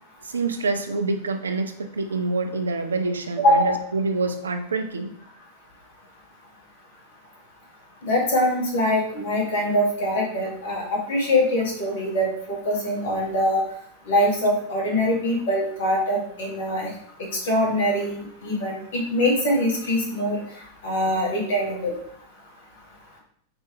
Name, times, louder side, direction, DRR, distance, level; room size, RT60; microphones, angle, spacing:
voice 1, 0.3-5.1, right 3 dB, 70° right, 7 dB, 0.4 m, -26 dB
voice 2, 3.4-3.8 8.0-13.6 14.1-16.9 17.2-20.4 20.8-21.9, left 1 dB, 55° left, -2 dB, 1.5 m, -23 dB
4.3 x 2.9 x 3.4 m, 0.64 s
figure-of-eight pair, 90°, 0 cm